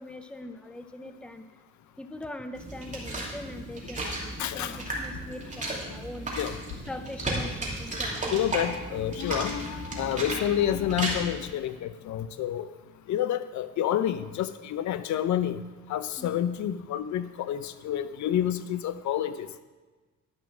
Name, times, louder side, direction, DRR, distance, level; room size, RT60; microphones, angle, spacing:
voice 1, 0.0-1.6 2.0-4.1 4.5-6.4 6.9-8.5 16.2-16.3, left 1 dB, 5° left, 8 dB, 0.7 m, -41 dB
sound 1, 2.5-11.2, right 2 dB, 25° right, 2.7 m, -34 dB
voice 2, 4.4-4.8 6.4-6.5 8.3-12.7 13.1-15.6 15.9-19.3, left 11 dB, 70° left, 12 dB, 0.6 m, -29 dB
11.5 x 6.1 x 5.9 m, 1.3 s
cardioid pair, 90°, 30 cm